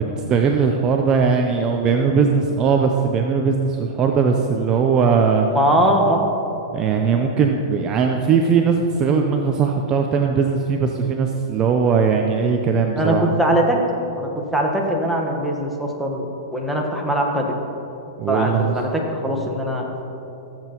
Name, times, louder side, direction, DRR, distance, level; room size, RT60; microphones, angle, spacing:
voice 1, 0.0-5.5 6.7-13.3 18.2-18.7, right 5 dB, 30° right, 3 dB, 0.6 m, -19 dB
voice 2, 5.5-6.3 12.9-13.8 14.1-17.4 18.3-19.8, right 1 dB, ahead, -1 dB, 1.3 m, -21 dB
16.0 x 7.7 x 3.0 m, 3.0 s
hypercardioid pair, 125°, 2 cm